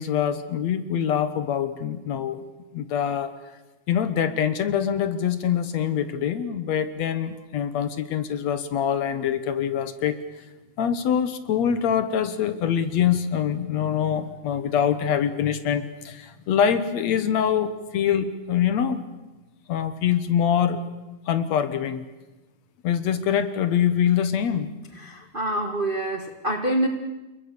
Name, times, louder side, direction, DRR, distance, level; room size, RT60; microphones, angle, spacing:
voice 1, 0.0-2.4 2.7-3.3 3.9-10.2 10.8-19.0 19.7-20.8 21.3-22.1 22.8-24.7, left 8 dB, 60° left, 12 dB, 2.1 m, -24 dB
voice 2, 25.0-26.9, right 1 dB, 60° right, 5 dB, 0.5 m, -26 dB
28.5 x 22.0 x 6.8 m, 1.1 s
omnidirectional pair, 3.9 m